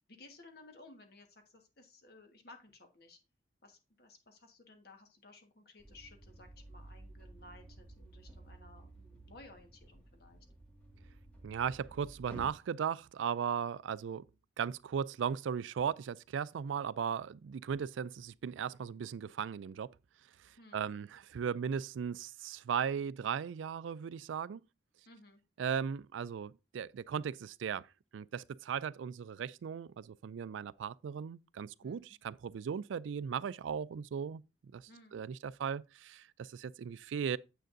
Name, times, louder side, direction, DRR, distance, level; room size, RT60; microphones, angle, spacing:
voice 1, 0.1-3.2 3.6-10.5 20.6-20.9 25.1-25.4 31.8-32.2 34.9-35.2, left 2 dB, 55° left, 1.4 m, -57 dB
sound 1, 5.8-12.5, right 1 dB, 10° left, 1.8 m, -53 dB
voice 2, 11.4-14.2 14.6-19.9 20.7-24.6 25.6-27.9 28.1-34.4 34.7-37.4, right 7 dB, 85° right, 0.3 m, -37 dB
9.1 x 7.5 x 2.6 m
head